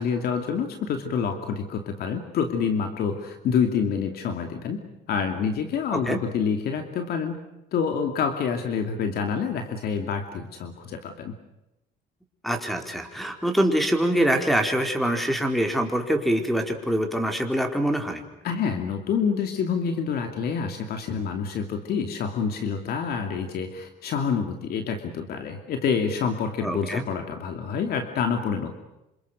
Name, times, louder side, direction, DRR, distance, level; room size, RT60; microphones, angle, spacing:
voice 1, 0.0-4.8 5.1-7.4 7.7-11.3 18.4-28.8, left 6 dB, 65° left, 5 dB, 2.6 m, -27 dB
voice 2, 12.4-18.2 26.6-27.0, right 1 dB, ahead, 4 dB, 4.5 m, -24 dB
28.5 x 27.0 x 6.4 m, 0.90 s
cardioid pair, 110°, 17 cm